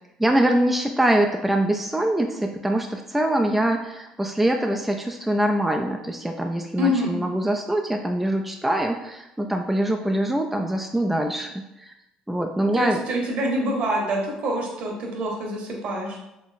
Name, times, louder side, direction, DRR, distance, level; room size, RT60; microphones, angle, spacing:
voice 1, 0.2-11.9 12.3-13.0, right 1 dB, 5° right, 3 dB, 0.3 m, -23 dB
voice 2, 6.8-7.2 12.7-16.2, equal, 55° right, 0 dB, 0.9 m, -26 dB
4.0 x 2.9 x 2.5 m, 0.90 s
supercardioid pair, 75°, 2 cm